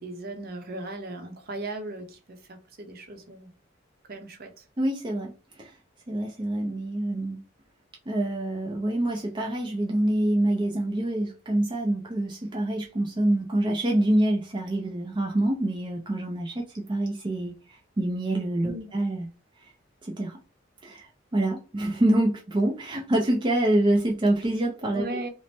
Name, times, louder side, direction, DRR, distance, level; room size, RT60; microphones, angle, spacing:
voice 1, 0.0-3.5 4.1-4.6 18.6-18.9 24.9-25.3, right 2 dB, 50° right, 0.8 m, -37 dB
voice 2, 4.8-5.3 5.6-5.7 6.1-7.4 8.1-19.3 19.6-19.7 20.0-20.4 20.8-25.3, right 1 dB, 25° right, 0.5 m, -26 dB
3.1 x 2.1 x 4.2 m
head